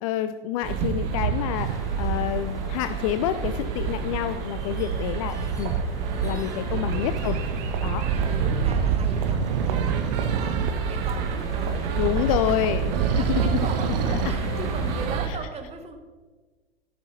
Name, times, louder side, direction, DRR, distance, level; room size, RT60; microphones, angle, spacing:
voice 1, 0.0-5.7 6.2-7.4 7.8-8.0 12.0-13.6 15.3-15.4, left 11 dB, 35° left, 10 dB, 0.4 m, -28 dB
sound 1, 0.6-15.3, right 5 dB, 45° right, 1.1 m, -27 dB
sound 2, 1.6-15.1, left 1 dB, 10° left, 1.1 m, -43 dB
sound 3, 1.6-1.9 5.0-5.3 6.8-10.7 12.9-14.3, right 10 dB, 65° right, 0.5 m, -31 dB
voice 2, 5.0-5.5 6.7-7.1 7.6-7.7 8.1-10.6 10.9-16.0, right 4 dB, 20° right, 5 dB, 1.2 m, -39 dB
12.0 x 6.0 x 4.0 m, 1.3 s
hypercardioid pair, 100°, 31 cm